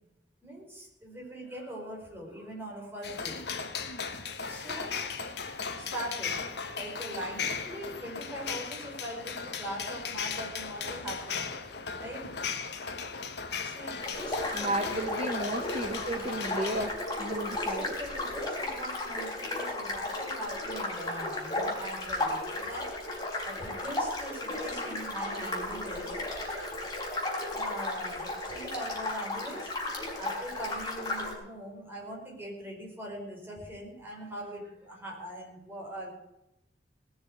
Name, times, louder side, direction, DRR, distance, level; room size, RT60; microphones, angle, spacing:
voice 1, 0.4-3.4 4.4-5.2 5.5-6.4 6.7-11.5 12.0-12.3 13.4-15.3 17.5-22.9 23.4-26.3 27.5-29.7 30.2-36.1, right 1 dB, 15° right, -3 dB, 5.1 m, -42 dB
sound 1, 3.0-16.9, left 5 dB, 70° left, 1.3 m, -37 dB
sound 2, 14.0-31.3, left 2 dB, 20° left, 4.1 m, -34 dB
voice 2, 14.5-17.9, right 1 dB, 40° right, 6 dB, 1.0 m, -33 dB
18.5 x 6.8 x 8.0 m, 0.88 s
head